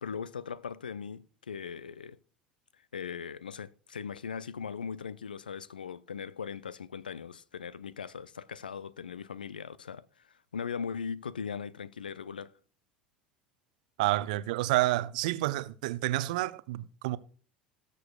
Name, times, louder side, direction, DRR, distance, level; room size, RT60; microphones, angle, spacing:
voice 1, 0.0-2.2 2.9-12.5, left 6 dB, 75° left, 0.3 m, -39 dB
voice 2, 14.0-17.2, right 17 dB, 60° right, 0.5 m, -29 dB
18.5 x 6.8 x 2.2 m
figure-of-eight pair, 70°, 5 cm